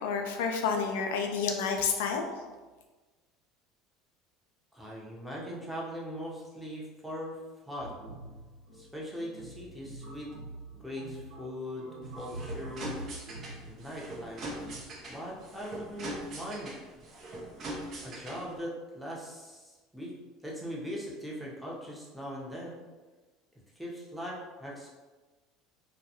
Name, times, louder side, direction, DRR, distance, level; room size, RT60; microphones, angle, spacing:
voice 1, 0.0-2.2, left 5 dB, 80° left, 4 dB, 0.3 m, -29 dB
voice 2, 4.7-7.4 7.6-8.1 8.7-10.4 10.8-11.9 12.2-13.0 13.7-14.5 15.1-16.7 18.0-20.1 20.4-22.8 23.8-24.9, equal, ahead, -4 dB, 0.7 m, -40 dB
sound 1, 7.8-14.8, right 2 dB, 65° right, 1.0 m, -45 dB
sound 2, 12.0-18.6, right 1 dB, 45° right, 0.6 m, -42 dB
2.2 x 2.2 x 2.8 m, 1.3 s
supercardioid pair, 90°, 0 cm